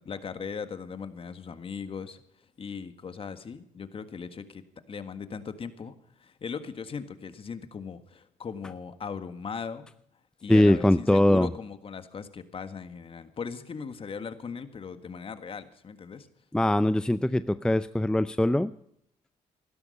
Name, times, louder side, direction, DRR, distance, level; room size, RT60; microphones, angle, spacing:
voice 1, 0.0-2.2 2.6-4.6 4.9-9.9 10.4-16.3, left 6 dB, 40° left, 10 dB, 1.7 m, -38 dB
voice 2, 10.5-11.5 16.5-18.7, left 1 dB, 5° left, 13 dB, 0.6 m, -22 dB
16.0 x 13.0 x 5.5 m, 0.70 s
supercardioid pair, 70°, 14 cm